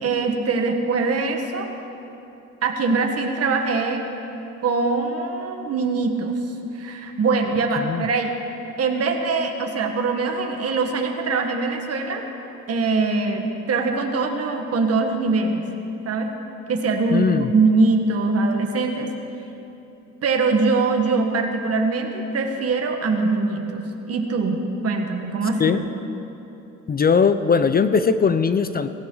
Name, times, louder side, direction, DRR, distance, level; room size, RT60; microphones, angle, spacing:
voice 1, 0.0-1.7 2.6-4.0 4.6-6.3 6.7-8.3 8.8-12.2 12.7-15.6 16.0-16.3 16.7-19.1 20.2-25.8, right 3 dB, 50° right, 3 dB, 1.5 m, -22 dB
voice 2, 17.1-17.5 25.6-25.8 26.9-28.9, left 5 dB, 30° left, 11 dB, 0.5 m, -19 dB
17.0 x 16.0 x 3.9 m, 3.0 s
cardioid pair, 90°, 30 cm